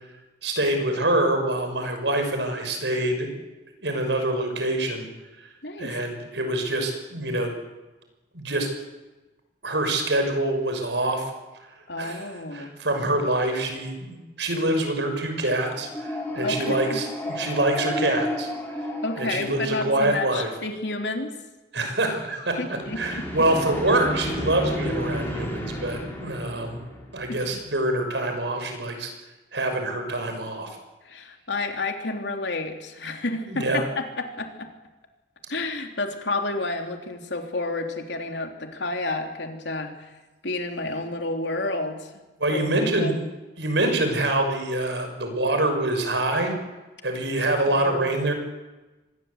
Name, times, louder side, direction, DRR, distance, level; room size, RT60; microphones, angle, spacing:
voice 1, 0.4-3.3 3.8-5.1 5.4-5.5 5.8-7.5 8.3-8.7 9.6-11.3 12.0-12.3 12.5-18.5 19.2-20.5 21.7-26.8 27.1-29.1 29.5-30.8 33.5-33.8 42.4-43.1 43.6-46.5 47.0-48.3, right 1 dB, 80° right, 5 dB, 6.3 m, -25 dB
voice 2, 5.6-5.9 11.9-12.7 16.4-17.0 19.0-21.3 22.6-23.5 27.3-27.6 31.0-34.7 35.5-40.1 40.4-42.1 42.5-43.1 47.7-48.1, left 2 dB, 80° left, 4 dB, 3.4 m, -30 dB
sound 1, 15.8-20.1 22.7-27.7, equal, 10° left, 5.6 m, -32 dB
25.5 x 20.5 x 8.3 m, 1.1 s
head